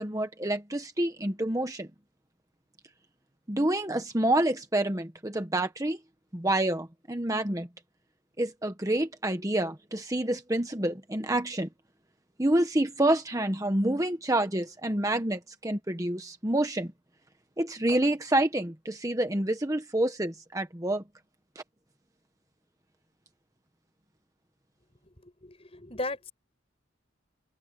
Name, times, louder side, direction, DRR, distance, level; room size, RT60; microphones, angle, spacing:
voice 1, 0.0-1.9 3.5-6.0 6.3-7.7 8.4-11.7 12.4-16.9 17.6-21.0 21.5-21.6, right 1 dB, 15° right, 1.2 m, -28 dB
voice 2, 25.2-26.3, left 2 dB, 30° left, 5.6 m, -36 dB
open air
head